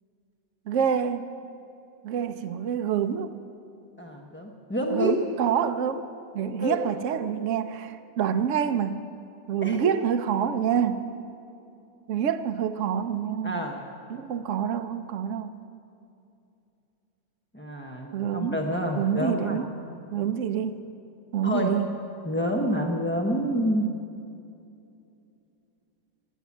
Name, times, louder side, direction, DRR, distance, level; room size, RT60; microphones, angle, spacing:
voice 1, 0.7-1.2 2.0-3.3 4.9-6.1 6.3-9.0 9.5-11.1 12.1-13.6 14.1-15.5 18.1-18.6 18.9-19.7 20.1-20.8 21.3-21.9, right 8 dB, 90° right, 8 dB, 0.6 m, -27 dB
voice 2, 4.0-5.1 6.6-6.8 9.6-9.9 13.4-13.8 17.5-19.6 21.4-21.8 22.2-23.9, equal, 15° left, 0 dB, 0.4 m, -28 dB
17.0 x 11.0 x 7.2 m, 2.7 s
omnidirectional pair, 2.0 m